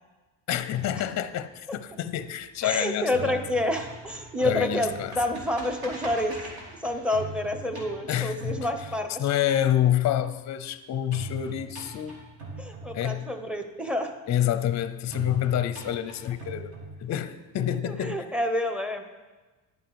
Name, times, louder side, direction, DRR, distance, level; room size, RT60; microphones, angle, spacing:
voice 1, 0.5-3.4 4.4-5.2 8.1-8.7 9.2-12.2 12.9-13.3 14.3-16.7 17.0-18.2, left 11 dB, 40° left, 0.6 m, -27 dB
sound 1, 0.7-2.7 3.0-9.5 11.1-13.5 15.1-17.5, right 2 dB, 55° right, 3.5 m, -41 dB
voice 2, 2.6-6.4 6.8-9.2 12.6-14.1 17.8-19.0, left 1 dB, ahead, 0.8 m, -28 dB
11.0 x 9.1 x 4.7 m
cardioid pair, 130°, 45 cm